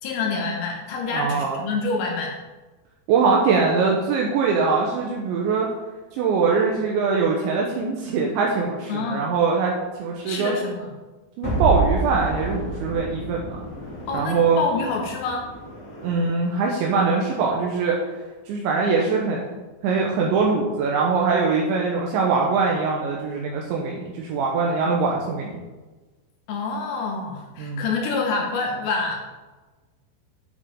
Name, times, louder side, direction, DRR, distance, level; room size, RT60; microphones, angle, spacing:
voice 1, 0.0-2.3 8.9-9.3 10.2-10.9 14.1-15.5 26.5-29.2, left 4 dB, 65° left, 1 dB, 2.7 m, -27 dB
voice 2, 1.1-1.6 3.1-5.7 6.1-9.7 10.0-10.6 11.4-13.7 14.1-14.6 16.0-18.0 18.5-19.6 19.8-25.6 27.6-27.8, right 4 dB, 75° right, -1 dB, 3.2 m, -22 dB
sound 1, 11.4-16.5, right 3 dB, 45° left, 2.6 m, -29 dB
10.0 x 8.1 x 3.7 m, 1.2 s
omnidirectional pair, 5.6 m